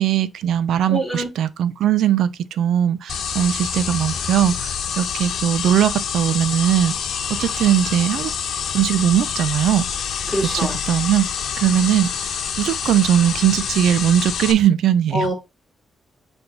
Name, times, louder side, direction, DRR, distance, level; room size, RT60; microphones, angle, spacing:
voice 1, 0.0-7.0 7.3-8.3 8.7-10.1 10.5-11.3 11.6-15.3, right 10 dB, 75° right, 0.5 m, -19 dB
voice 2, 0.9-1.3 10.3-10.8 15.1-15.3, right 1 dB, ahead, 3.0 m, -24 dB
sound 1, 3.1-14.5, left 7 dB, 65° left, 1.0 m, -27 dB
6.9 x 3.5 x 4.0 m
cardioid pair, 140°, 0 cm